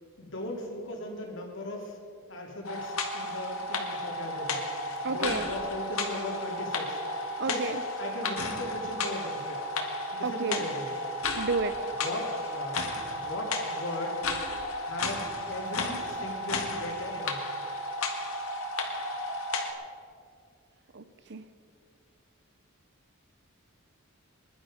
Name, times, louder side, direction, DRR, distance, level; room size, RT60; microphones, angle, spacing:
voice 1, 0.2-2.0 2.3-4.6 5.1-7.0 7.4-7.7 8.0-9.6 10.1-11.0 11.3-11.4 12.0-12.8 13.1-14.2 14.8-17.4, left 1 dB, 60° left, 0 dB, 3.0 m, -38 dB
sound 1, 2.6-19.7, left 2 dB, 80° left, 2.0 m, -33 dB
voice 2, 5.0-5.5 7.4-7.8 10.2-10.6 11.3-11.8 20.9-21.0 21.3-21.4, right 3 dB, 55° right, 12 dB, 0.7 m, -31 dB
21.0 x 11.5 x 5.1 m, 2.4 s
head